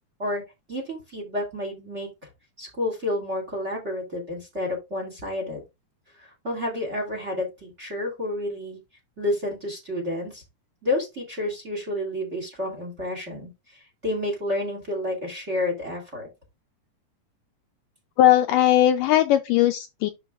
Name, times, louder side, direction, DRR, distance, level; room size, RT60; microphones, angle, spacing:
voice 1, 0.7-2.1 2.6-5.6 6.2-8.8 9.2-10.4 10.8-16.3, left 1 dB, 25° right, 1.9 m, -30 dB
voice 2, 18.2-20.1, left 13 dB, 85° left, 1.9 m, -19 dB
11.5 x 5.2 x 2.5 m
omnidirectional pair, 4.3 m